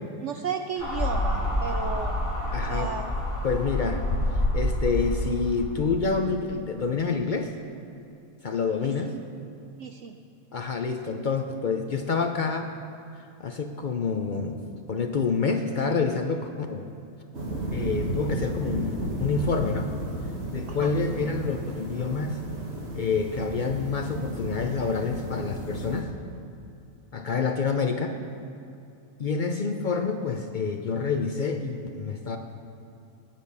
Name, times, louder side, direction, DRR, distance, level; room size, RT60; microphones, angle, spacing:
voice 1, 0.2-2.1 2.7-3.1 8.8-8.9 9.8-10.2 20.7-20.9, right 6 dB, 65° right, 6 dB, 0.7 m, -33 dB
sound 1, 0.8-6.0, left 1 dB, 20° left, 1.6 m, -28 dB
voice 2, 2.5-2.9 3.4-4.0 4.5-7.5 8.4-9.1 10.5-12.7 13.4-14.6 14.9-16.9 17.7-19.9 20.5-22.4 22.9-26.1 27.1-28.2 29.2-32.4, left 5 dB, 60° left, 5 dB, 0.4 m, -27 dB
sound 2, 17.3-26.0, right 1 dB, 45° right, 2.1 m, -33 dB
19.5 x 7.1 x 5.4 m, 2.6 s
omnidirectional pair, 1.6 m